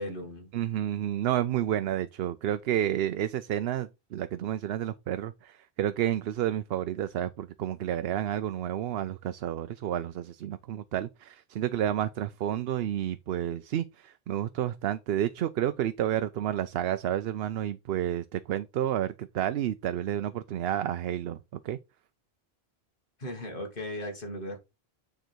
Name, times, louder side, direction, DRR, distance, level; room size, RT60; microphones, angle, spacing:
voice 1, 0.0-0.5 23.2-24.6, left 1 dB, 55° left, 2.4 m, -37 dB
voice 2, 0.5-21.4 21.6-21.8, right 11 dB, 70° right, 0.8 m, -30 dB
9.0 x 3.9 x 4.5 m
omnidirectional pair, 1.1 m